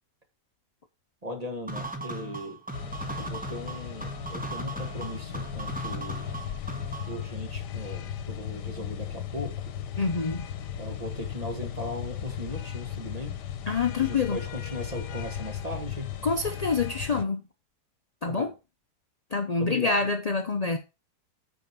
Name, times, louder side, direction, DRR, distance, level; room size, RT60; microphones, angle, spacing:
voice 1, 1.2-2.6 3.2-6.3 7.1-9.7 10.8-13.4 14.0-16.1 18.2-18.5 19.6-20.0, left 1 dB, 25° right, 1.6 m, -38 dB
sound 1, 1.7-7.2, right 2 dB, 5° right, 1.0 m, -37 dB
sound 2, 2.7-17.2, left 9 dB, 85° left, 1.4 m, -36 dB
voice 2, 10.0-10.5 13.7-14.4 16.2-17.4 18.2-18.5 19.3-20.8, left 4 dB, 65° left, 0.3 m, -26 dB
9.0 x 5.0 x 4.6 m
omnidirectional pair, 1.8 m